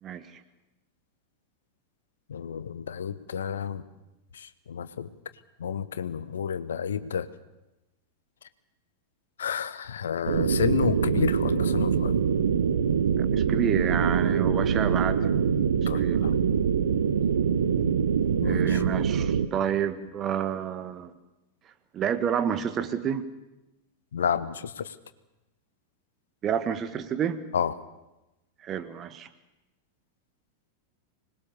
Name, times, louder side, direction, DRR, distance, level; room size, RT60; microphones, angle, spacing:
voice 1, 2.3-3.8 4.3-5.1 5.6-7.3 9.4-12.1 15.9-16.3 18.4-18.8 24.1-24.9 27.5-27.7, left 7 dB, 65° left, 14 dB, 1.1 m, -30 dB
sound 1, 10.3-19.4, right 7 dB, 65° right, 1.3 m, -24 dB
voice 2, 13.2-15.3 15.9-16.3 18.4-21.1 21.9-23.3 26.4-27.4 28.6-29.3, right 8 dB, 30° right, 12 dB, 1.7 m, -29 dB
25.5 x 20.5 x 7.1 m, 0.97 s
figure-of-eight pair, 90°, 0 cm